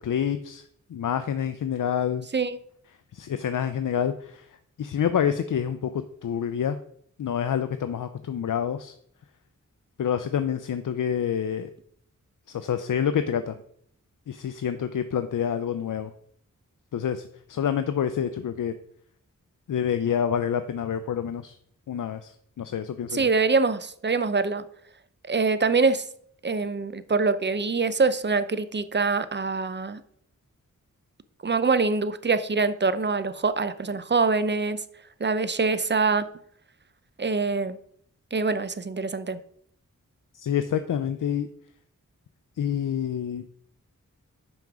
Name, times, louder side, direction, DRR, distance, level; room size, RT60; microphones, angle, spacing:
voice 1, 0.0-0.6 0.9-2.3 3.1-4.5 4.8-6.8 7.2-8.9 10.0-11.7 12.5-13.6 14.3-16.1 16.9-18.7 19.7-21.6 21.9-23.3 40.3-41.5 42.6-43.4, left 8 dB, 75° left, 11 dB, 0.5 m, -27 dB
voice 2, 23.1-24.6 25.3-26.0 26.4-30.0 31.4-34.8 35.2-36.3 37.2-37.8 38.3-39.4, right 4 dB, 35° right, 13 dB, 0.7 m, -24 dB
5.9 x 5.1 x 6.1 m, 0.66 s
wide cardioid pair, 60°, 32 cm